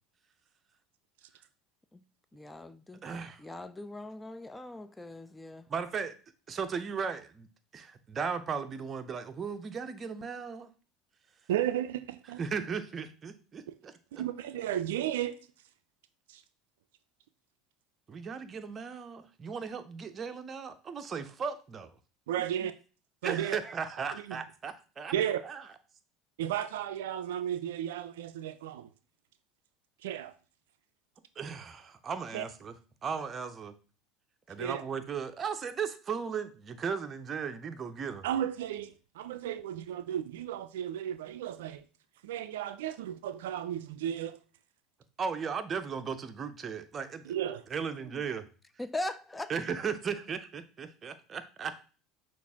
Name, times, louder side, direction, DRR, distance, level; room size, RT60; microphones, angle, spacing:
voice 1, 2.3-3.0 3.4-5.7 48.1-48.2 48.8-49.5, left 2 dB, 10° left, 0.3 m, -40 dB
voice 2, 3.0-3.4 5.7-6.1 6.5-7.5 7.7-10.7 12.4-14.2 18.1-21.9 23.2-25.1 25.4-25.6 31.4-32.7 33.0-33.7 34.5-38.2 45.2-47.3 47.7-48.4 49.5-51.8, right 6 dB, 35° right, 0.6 m, -36 dB
voice 3, 11.5-12.4 13.7-13.8 14.2-15.4 16.3-16.4 22.3-22.7 23.2-23.6 24.1-24.4 25.1-25.4 26.4-28.9 30.0-30.3 32.3-32.4 34.6-34.8 38.2-41.8 42.2-44.4 47.3-47.6, right 11 dB, 80° right, 0.3 m, -34 dB
5.9 x 2.5 x 3.5 m
hypercardioid pair, 85°, 0 cm